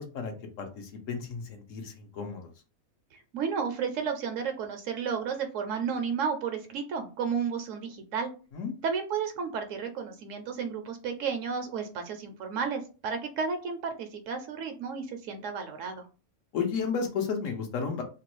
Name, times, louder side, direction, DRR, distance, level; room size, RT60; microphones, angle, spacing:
voice 1, 0.0-2.5 8.5-8.7 16.5-18.0, left 5 dB, 70° left, 4 dB, 1.0 m, -33 dB
voice 2, 3.1-8.3 8.8-16.1, right 6 dB, 70° right, 6 dB, 0.9 m, -32 dB
2.9 x 2.2 x 3.0 m, 0.34 s
omnidirectional pair, 1.5 m